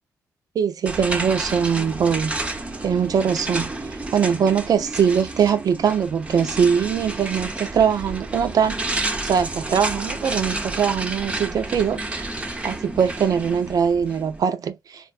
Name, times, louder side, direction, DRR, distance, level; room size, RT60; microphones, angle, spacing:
voice 1, 0.6-2.4 2.8-3.7 4.1-8.8 9.2-12.3 12.6-15.1, right 7 dB, 65° right, 0.5 m, -21 dB
sound 1, 0.9-14.4, right 2 dB, 15° right, 0.6 m, -30 dB
3.9 x 2.2 x 2.3 m
cardioid pair, 75°, 7 cm